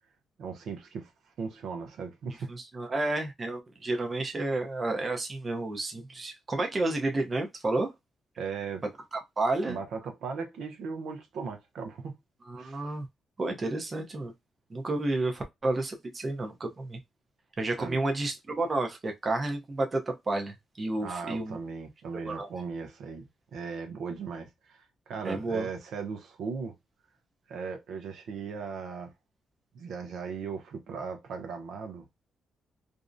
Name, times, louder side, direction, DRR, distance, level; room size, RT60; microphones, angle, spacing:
voice 1, 0.4-2.5 8.4-8.8 9.7-12.2 12.6-13.0 17.8-18.0 21.0-23.2 23.5-26.8 27.5-29.1 29.7-32.0, right 5 dB, 75° right, 0.6 m, -38 dB
voice 2, 2.5-7.9 9.1-9.8 12.5-13.1 13.4-14.3 14.7-17.0 17.6-21.6 22.2-22.5 25.2-25.7, right 2 dB, 30° right, 0.6 m, -31 dB
2.5 x 2.0 x 2.5 m
cardioid pair, 100°, 0 cm